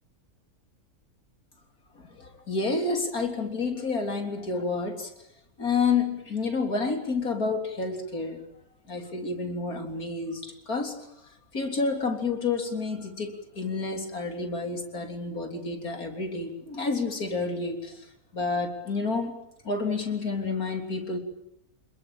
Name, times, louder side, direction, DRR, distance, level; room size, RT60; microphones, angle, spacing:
voice 1, 2.0-5.1 5.6-8.4 8.9-11.0 11.5-18.1 18.3-19.4 19.6-21.2, left 4 dB, 80° left, 4 dB, 4.0 m, -29 dB
27.0 x 21.5 x 8.9 m, 0.78 s
omnidirectional pair, 1.5 m